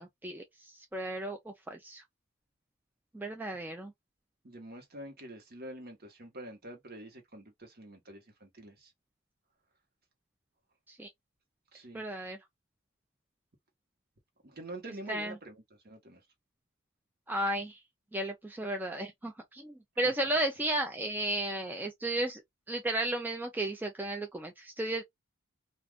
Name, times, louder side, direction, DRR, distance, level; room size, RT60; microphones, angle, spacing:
voice 1, 0.0-2.0 3.1-3.9 10.9-11.1 11.9-12.4 15.1-15.3 17.3-17.8 18.1-22.4 22.7-25.0, right 1 dB, 10° right, 0.4 m, -34 dB
voice 2, 4.4-8.9 11.7-12.0 14.4-16.2 20.0-20.1, right 1 dB, 45° right, 1.1 m, -46 dB
2.4 x 2.4 x 3.4 m
head